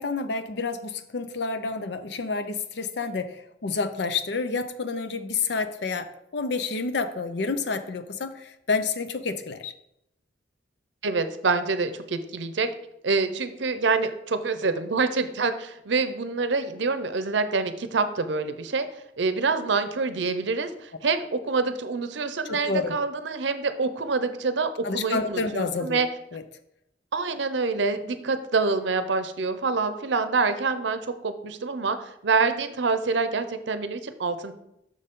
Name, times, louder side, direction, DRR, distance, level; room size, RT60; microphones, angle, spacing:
voice 1, 0.0-9.7 22.4-23.0 24.8-26.0 26.3-26.4, left 4 dB, 65° left, 10 dB, 0.6 m, -29 dB
voice 2, 11.0-12.7 13.0-18.9 19.2-26.1 27.1-34.5, right 4 dB, 75° right, 10 dB, 0.6 m, -26 dB
6.7 x 6.3 x 3.7 m, 0.80 s
head